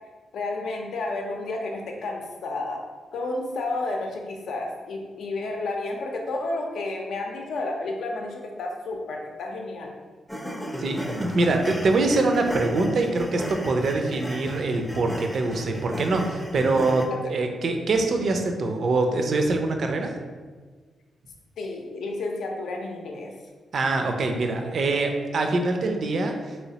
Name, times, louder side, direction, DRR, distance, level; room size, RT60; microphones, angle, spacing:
voice 1, 0.3-2.8 3.1-9.9 17.1-17.2 21.6-23.3, left 2 dB, 80° left, 1 dB, 0.5 m, -31 dB
sound 1, 10.3-17.1, equal, 5° left, 0.4 m, -35 dB
voice 2, 10.8-20.1 23.7-26.6, right 2 dB, 60° right, 4 dB, 0.4 m, -24 dB
3.2 x 3.0 x 2.8 m, 1.4 s
cardioid pair, 85°, 0 cm